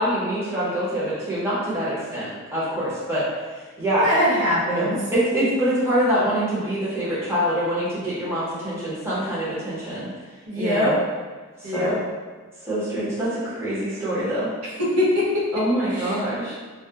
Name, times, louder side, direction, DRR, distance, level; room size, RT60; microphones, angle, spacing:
voice 1, 0.0-3.3 3.6-4.1 4.7-10.1 10.6-11.0 11.6-12.0 12.6-14.5 15.5-16.5, right 1 dB, 10° right, -10 dB, 0.6 m, -25 dB
voice 2, 4.0-5.0 10.5-10.9 11.6-12.0 14.8-15.4 15.9-16.2, left 1 dB, 90° right, -4 dB, 0.6 m, -22 dB
2.2 x 2.0 x 2.7 m, 1.4 s
head